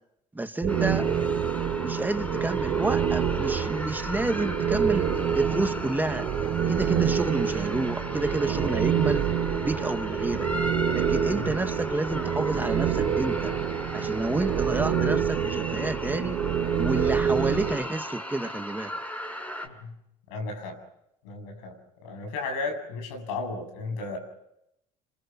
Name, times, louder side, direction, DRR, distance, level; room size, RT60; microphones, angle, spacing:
voice 1, 0.3-1.1 1.8-5.1 5.3-6.3 6.7-9.2 9.6-10.5 10.9-13.5 13.9-16.4 16.8-18.9, right 2 dB, 10° right, 8 dB, 1.7 m, -29 dB
sound 1, 0.6-17.8, right 8 dB, 65° right, 3.3 m, -27 dB
sound 2, 0.7-19.7, equal, 10° left, 6.6 m, -37 dB
voice 2, 20.3-20.8 21.2-21.8 22.0-24.2, left 3 dB, 90° left, 6 dB, 7.8 m, -34 dB
29.0 x 26.0 x 6.1 m, 0.81 s
supercardioid pair, 80°, 15 cm